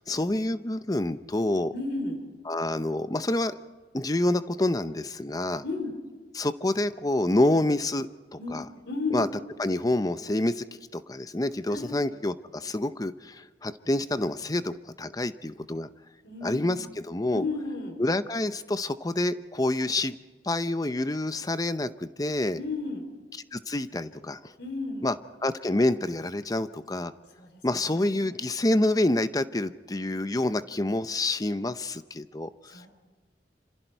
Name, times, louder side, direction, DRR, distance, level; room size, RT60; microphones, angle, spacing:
voice 1, 0.0-1.7 2.5-3.6 3.9-5.6 6.3-8.6 9.1-9.3 9.6-10.6 10.9-15.9 16.4-17.4 18.0-20.2 20.4-22.6 23.5-24.5 25.0-25.1 25.4-27.1 27.6-32.8, left 1 dB, 20° left, 12 dB, 0.7 m, -27 dB
voice 2, 1.7-2.2 5.6-6.0 8.4-9.3 11.7-11.9 16.2-16.9 17.3-18.0 22.5-23.1 24.6-25.1 27.4-28.4 32.7-32.9, left 3 dB, 80° left, 6 dB, 3.5 m, -33 dB
27.0 x 26.5 x 4.6 m, 1.4 s
head